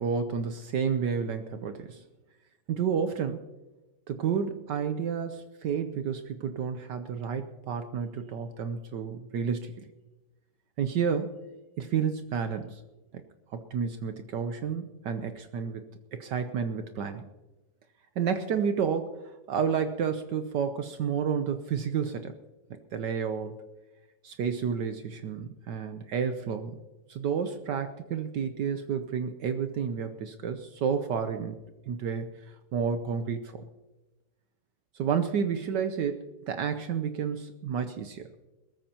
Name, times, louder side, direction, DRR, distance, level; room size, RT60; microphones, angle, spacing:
voice 1, 0.0-2.0 2.7-3.4 4.1-9.7 10.8-11.4 11.8-12.8 13.5-15.9 16.1-17.2 18.2-22.3 22.7-23.5 24.2-26.8 27.1-31.6 31.9-32.3 32.7-33.6 34.9-38.3, right 7 dB, 70° right, 8 dB, 1.4 m, -30 dB
21.5 x 14.0 x 2.9 m, 1.1 s
omnidirectional pair, 2.1 m